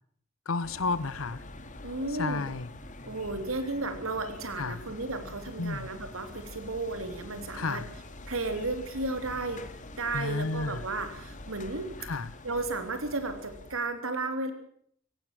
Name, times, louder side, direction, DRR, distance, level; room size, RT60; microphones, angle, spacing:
voice 1, 0.5-1.4 2.2-2.7 4.6-4.8 5.6-5.9 7.5-7.9 10.1-10.8 12.0-12.3, left 3 dB, 85° left, 17 dB, 0.9 m, -31 dB
sound 1, 0.6-13.8, left 1 dB, 40° left, 2.1 m, -45 dB
voice 2, 1.8-2.5 3.0-7.8 8.3-9.6 10.0-11.9 12.4-14.5, right 2 dB, 85° right, 7 dB, 3.5 m, -33 dB
18.0 x 17.0 x 9.0 m, 0.64 s
head